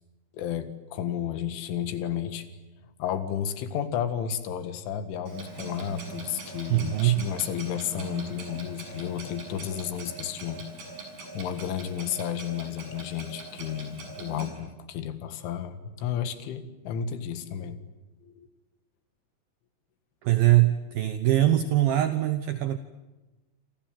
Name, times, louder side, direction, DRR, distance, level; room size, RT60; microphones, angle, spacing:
voice 1, 0.3-2.5 3.0-10.7 11.3-17.8 18.2-18.5, left 9 dB, 90° left, 10 dB, 4.2 m, -32 dB
Clock, 5.3-14.5, right 3 dB, 50° right, 8.2 m, -41 dB
voice 2, 6.7-7.3 20.2-22.8, right 14 dB, 70° right, 10 dB, 2.3 m, -22 dB
28.0 x 27.0 x 7.7 m, 1.1 s
omnidirectional pair, 5.4 m